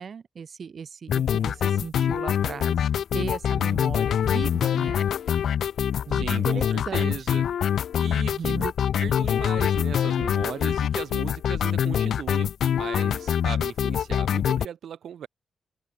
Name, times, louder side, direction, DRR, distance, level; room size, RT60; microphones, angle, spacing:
voice 1, 0.0-2.8 3.1-5.0 6.1-7.1 8.2-8.7, right 6 dB, 50° right, 1.3 m, -36 dB
sound 1, 1.1-14.7, left 9 dB, 85° left, 0.3 m, -24 dB
voice 2, 6.1-7.4 8.0-8.7 9.0-15.3, right 9 dB, 85° right, 6.1 m, -37 dB
open air
wide cardioid pair, 150°, 0 cm